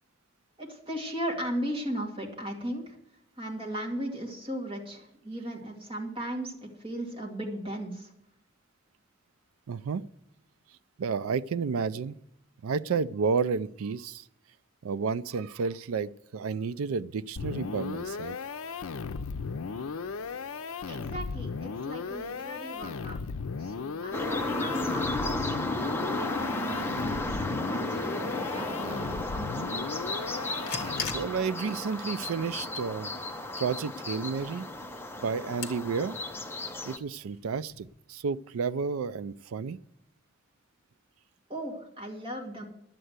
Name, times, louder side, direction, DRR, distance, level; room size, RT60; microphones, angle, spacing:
voice 1, 0.6-3.0 3.4-8.1 20.9-23.2 23.6-29.7 41.5-42.6, right 1 dB, 25° right, 2.3 m, -37 dB
voice 2, 9.7-10.0 11.0-12.2 12.6-14.2 14.8-18.4 30.8-33.1 33.6-34.7 35.2-36.2 36.8-39.8, right 5 dB, 80° right, 0.4 m, -31 dB
sound 1, 17.4-31.4, left 5 dB, 80° left, 0.5 m, -36 dB
sound 2, 24.1-37.0, left 2 dB, 10° left, 0.7 m, -34 dB
sound 3, 30.0-38.0, left 5 dB, 50° left, 1.3 m, -44 dB
11.0 x 7.6 x 8.0 m
head